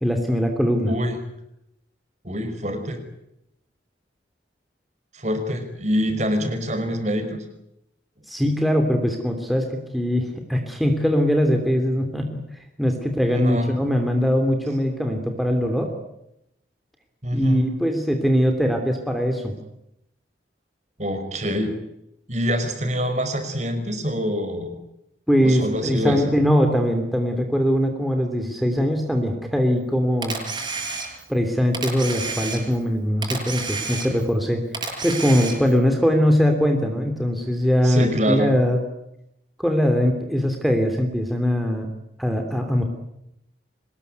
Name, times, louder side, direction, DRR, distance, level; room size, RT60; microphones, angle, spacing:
voice 1, 0.0-0.9 8.3-12.4 12.8-15.9 17.3-19.5 25.3-30.4 31.3-34.6 35.0-38.8 39.6-41.9 42.2-42.8, equal, ahead, 3 dB, 3.0 m, -21 dB
voice 2, 0.8-1.2 2.2-3.0 5.1-7.4 13.3-13.7 17.2-17.6 21.0-21.7 22.3-24.7 25.4-26.2 37.8-38.5, equal, 40° right, 7 dB, 5.3 m, -25 dB
Camera, 30.2-31.4 31.7-32.9 33.2-34.4 34.7-35.8, right 4 dB, 25° right, 7.5 m, -30 dB
25.0 x 20.5 x 9.4 m, 0.82 s
head